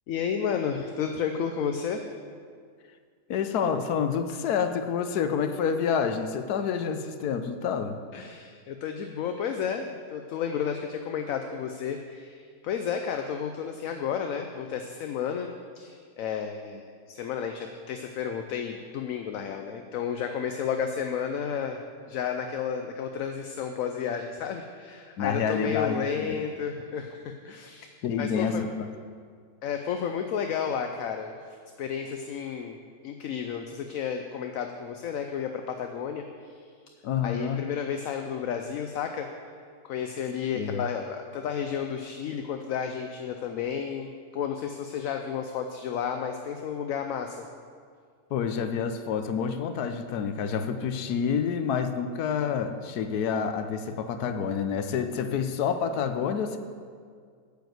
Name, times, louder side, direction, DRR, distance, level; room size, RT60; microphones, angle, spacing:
voice 1, 0.1-2.1 8.1-15.5 15.7-21.8 22.1-27.9 28.2-28.7 29.6-31.4 31.8-32.8 33.0-36.7 37.2-39.3 39.8-47.5, left 7 dB, 70° left, 5 dB, 1.0 m, -32 dB
voice 2, 3.3-8.0 25.2-26.4 28.0-28.9 37.0-37.6 40.5-40.8 48.3-56.6, left 7 dB, 85° left, 9 dB, 1.3 m, -28 dB
9.1 x 7.2 x 7.9 m, 2.1 s
omnidirectional pair, 1.6 m